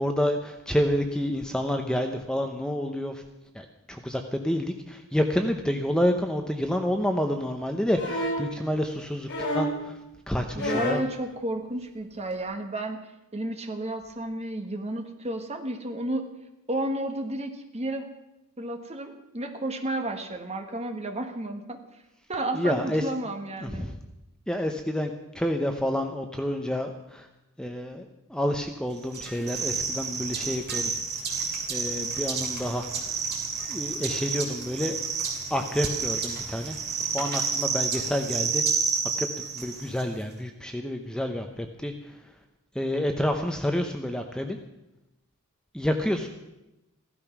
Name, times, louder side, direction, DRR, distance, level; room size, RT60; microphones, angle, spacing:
voice 1, 0.0-3.2 3.5-9.3 9.5-9.9 10.3-11.0 22.5-23.0 23.6-24.0 24.5-27.3 27.6-28.0 28.3-30.9 31.7-32.9 33.7-35.0 35.5-36.8 37.1-38.6 39.2-39.3 39.5-41.9 42.7-44.6 45.7-46.3, equal, 5° left, 5 dB, 0.8 m, -28 dB
sound 1, 7.9-8.5 9.3-9.8 10.6-11.1 12.3-12.4, left 1 dB, 55° left, 4.3 m, -29 dB
voice 2, 10.5-13.0 13.3-16.3 16.7-18.1 18.6-21.8 22.3-23.9, right 1 dB, 30° right, 5 dB, 1.5 m, -32 dB
sound 2, 29.1-40.0, right 5 dB, 50° right, 2.8 m, -30 dB
15.5 x 12.5 x 6.0 m, 0.95 s
head